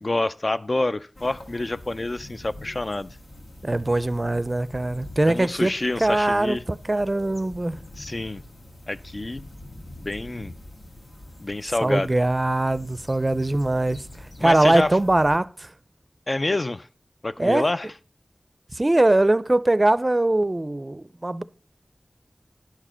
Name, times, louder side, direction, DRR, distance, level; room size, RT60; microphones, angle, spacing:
voice 1, 0.0-3.1 5.2-6.6 8.0-8.4 8.9-9.4 10.0-10.5 11.4-12.1 14.4-15.0 16.3-16.9 17.2-17.9, left 2 dB, 45° left, 0.4 m, -27 dB
sound 1, 1.1-15.4, left 1 dB, 85° left, 1.6 m, -44 dB
voice 2, 3.6-7.8 11.8-15.7 17.4-17.7 18.7-21.4, right 2 dB, 35° right, 0.4 m, -22 dB
10.5 x 4.9 x 5.5 m
wide cardioid pair, 50°, 0 cm